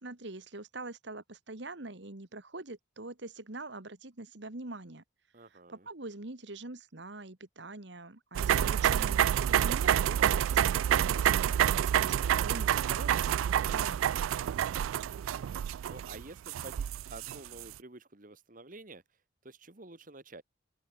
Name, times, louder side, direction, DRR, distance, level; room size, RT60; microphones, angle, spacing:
voice 1, 0.0-5.0 5.5-14.2, right 2 dB, 60° right, 1.8 m, -44 dB
voice 2, 5.3-5.9 14.8-19.0 19.4-20.4, right 2 dB, 40° right, 1.7 m, -50 dB
sound 1, 8.4-17.6, right 10 dB, 85° right, 0.3 m, -28 dB
open air
head